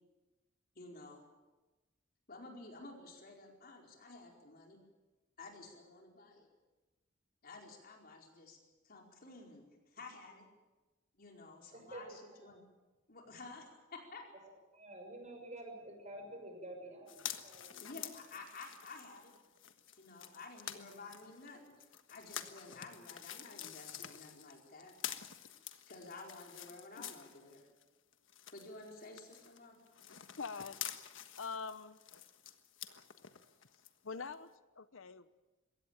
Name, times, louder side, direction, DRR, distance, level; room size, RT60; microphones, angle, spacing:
voice 1, 0.7-1.2 2.3-4.8 5.4-6.5 7.4-8.6 8.8-9.6 9.9-10.5 11.2-12.6 13.1-14.2 17.7-19.3 20.0-21.7 22.1-24.9 25.9-27.7 28.5-29.8, left 3 dB, 50° left, 1 dB, 4.7 m, -52 dB
voice 2, 11.7-12.0 12.4-12.5 14.7-17.8, right 1 dB, 35° right, 3 dB, 6.2 m, -49 dB
sound 1, 17.1-27.8 28.1-33.9 34.3-34.4, left 10 dB, 70° left, 1.4 m, -48 dB
voice 3, 30.4-30.8 31.4-32.0 34.0-34.5 34.8-35.3, left 5 dB, 90° left, 13 dB, 0.9 m, -43 dB
22.0 x 17.0 x 8.9 m, 1.2 s
head